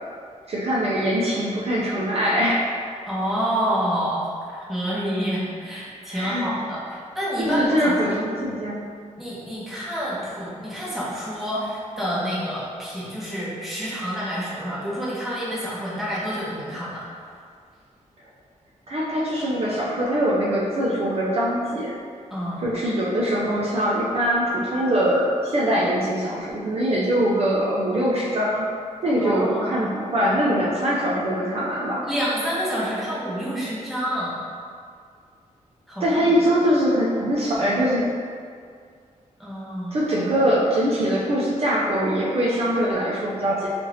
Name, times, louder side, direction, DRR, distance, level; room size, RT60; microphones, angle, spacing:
voice 1, 0.5-2.7 6.1-6.4 7.5-8.8 18.9-22.0 22.6-28.7 29.0-32.1 36.0-38.1 39.9-43.7, equal, 50° right, -6 dB, 0.5 m, -22 dB
voice 2, 3.1-8.0 9.2-17.0 22.3-22.7 29.2-29.8 32.0-34.4 35.9-36.3 39.4-40.4, equal, ahead, -9 dB, 0.8 m, -28 dB
2.7 x 2.5 x 3.2 m, 2.1 s
wide cardioid pair, 120°, 13 cm